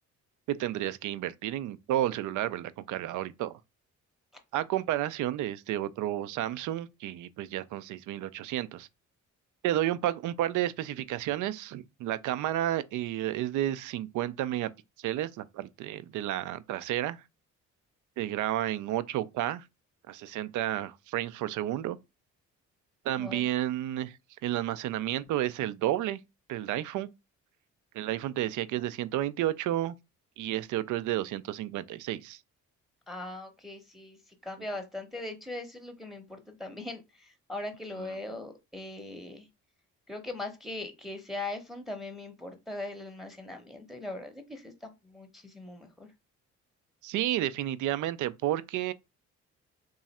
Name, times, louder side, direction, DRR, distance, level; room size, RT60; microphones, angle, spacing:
voice 1, 0.5-3.5 4.5-8.9 9.6-14.7 15.0-17.2 18.2-19.7 20.1-22.0 23.0-24.2 24.4-26.2 26.5-27.1 27.9-29.9 30.4-32.4 38.0-38.2 47.0-48.9, right 13 dB, 80° right, 0.4 m, -31 dB
voice 2, 33.1-34.2 34.4-39.5 40.1-46.1, left 2 dB, ahead, 0.8 m, -40 dB
3.1 x 2.4 x 4.1 m
cardioid pair, 90°, 30 cm